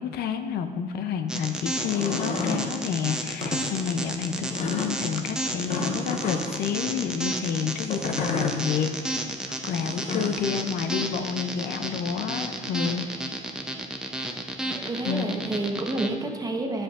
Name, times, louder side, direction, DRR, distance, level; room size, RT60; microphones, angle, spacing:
voice 1, 0.0-13.1 15.0-15.3, left 7 dB, 70° left, 8 dB, 0.5 m, -29 dB
sound 1, 1.3-16.1, right 1 dB, 5° right, 0.6 m, -32 dB
sound 2, 1.7-2.6 3.3-3.6 4.5-4.9 5.7-6.6 7.8-8.6 9.8-10.4, left 4 dB, 45° left, 1.0 m, -30 dB
voice 2, 14.6-16.8, right 2 dB, 20° right, 2 dB, 0.9 m, -29 dB
10.0 x 7.3 x 2.5 m, 2.1 s
cardioid pair, 110°, 17 cm